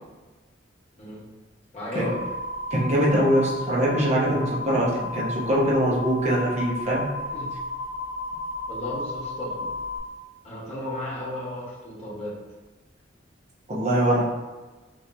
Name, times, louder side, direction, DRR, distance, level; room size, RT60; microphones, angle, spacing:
voice 1, 1.7-2.2 7.3-7.5 8.7-9.6 10.4-12.4, left 1 dB, 35° left, -7 dB, 1.1 m, -34 dB
sound 1, 2.0-10.0, left 2 dB, 85° left, 0.5 m, -33 dB
voice 2, 2.7-7.1 13.7-14.3, right 1 dB, 35° right, -5 dB, 0.8 m, -23 dB
3.0 x 2.7 x 3.4 m, 1.2 s
head